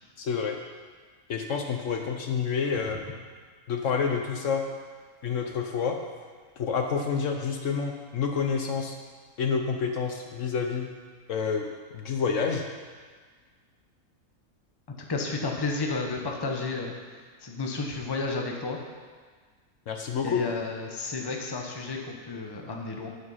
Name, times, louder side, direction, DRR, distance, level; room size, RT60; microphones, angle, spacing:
voice 1, 0.2-0.6 1.3-3.0 3.7-4.6 5.2-6.0 6.6-9.0 9.4-10.9 11.3-11.6 11.9-12.7 19.9-20.4, left 6 dB, 65° left, 3 dB, 1.1 m, -28 dB
voice 2, 15.1-18.8 20.2-23.1, left 3 dB, 20° left, 1 dB, 0.9 m, -32 dB
11.5 x 5.5 x 5.6 m, 1.6 s
omnidirectional pair, 1.5 m